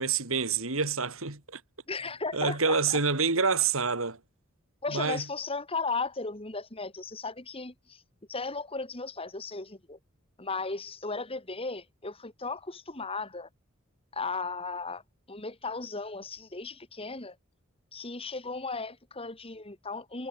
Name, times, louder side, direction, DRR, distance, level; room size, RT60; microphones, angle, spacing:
voice 1, 0.0-1.6 2.3-4.2 4.9-5.2, right 5 dB, 85° right, 3.1 m, -27 dB
voice 2, 1.9-3.0 4.8-8.0 8.3-10.0 10.4-13.5 14.1-15.0 15.3-17.4 17.9-20.3, left 3 dB, 30° left, 2.8 m, -36 dB
head